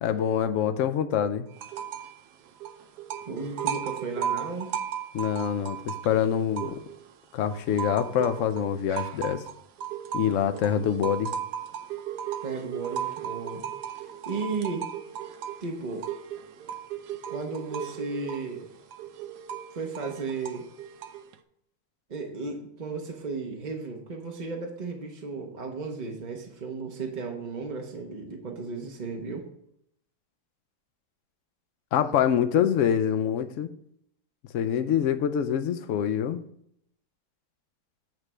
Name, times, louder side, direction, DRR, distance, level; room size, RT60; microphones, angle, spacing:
voice 1, 0.0-1.5 5.1-6.8 7.3-9.4 10.1-11.3 31.9-33.7 34.5-36.4, left 9 dB, 65° left, 10 dB, 0.8 m, -25 dB
sound 1, 1.6-2.2 2.5-7.1 7.5-21.3, right 9 dB, 90° right, 1.2 m, -36 dB
voice 2, 3.3-4.7 12.4-13.7 14.0-14.9 15.6-16.1 17.3-18.7 19.7-20.7 22.1-29.5 32.4-32.7, right 4 dB, 35° right, 1 dB, 0.8 m, -34 dB
9.0 x 3.3 x 6.1 m, 0.72 s
omnidirectional pair, 1.7 m